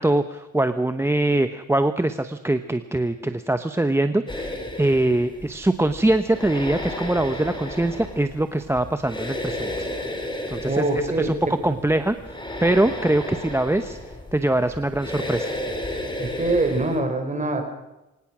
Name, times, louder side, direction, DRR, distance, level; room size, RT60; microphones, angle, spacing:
voice 1, 0.0-9.9 10.5-12.2 12.6-14.0 14.3-15.5, right 1 dB, 10° right, 9 dB, 1.0 m, -23 dB
sound 1, 4.3-17.0, left 1 dB, 15° left, 4.5 m, -33 dB
voice 2, 10.6-11.6 16.2-17.6, right 2 dB, 25° right, 5 dB, 5.3 m, -24 dB
24.0 x 19.0 x 6.2 m, 0.99 s
cardioid pair, 90°, 30 cm